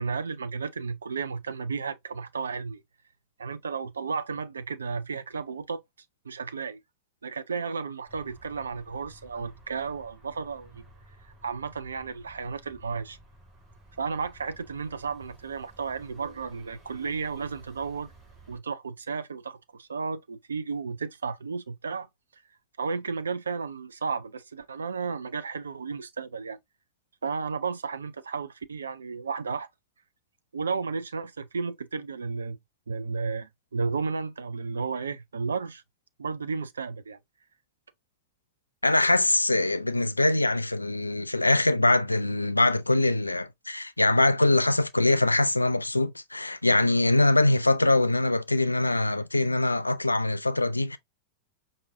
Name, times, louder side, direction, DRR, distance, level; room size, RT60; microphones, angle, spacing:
voice 1, 0.0-2.8 3.4-5.8 6.3-6.8 7.2-10.8 11.4-13.2 14.0-18.1 18.5-22.1 22.3-22.4 22.8-26.6 27.2-29.7 30.5-32.6 32.9-35.8 36.2-37.2, right 5 dB, 70° right, 0.3 m, -33 dB
sound 1, 8.1-18.6, right 2 dB, 30° right, 2.6 m, -54 dB
voice 2, 38.8-51.0, left 2 dB, 85° left, 0.3 m, -23 dB
5.2 x 2.6 x 2.6 m
figure-of-eight pair, 90°, 0 cm